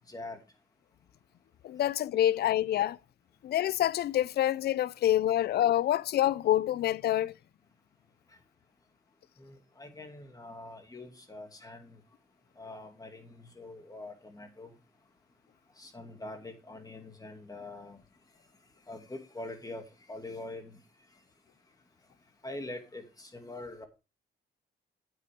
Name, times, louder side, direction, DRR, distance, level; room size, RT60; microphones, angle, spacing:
voice 1, 0.1-0.4 9.4-12.0 12.6-14.7 15.8-18.0 18.9-20.8 22.4-23.9, left 2 dB, 20° left, 2.4 m, -44 dB
voice 2, 1.6-3.0 3.4-7.3, left 12 dB, 55° left, 0.4 m, -27 dB
9.2 x 8.6 x 3.6 m
cardioid pair, 90°, 20 cm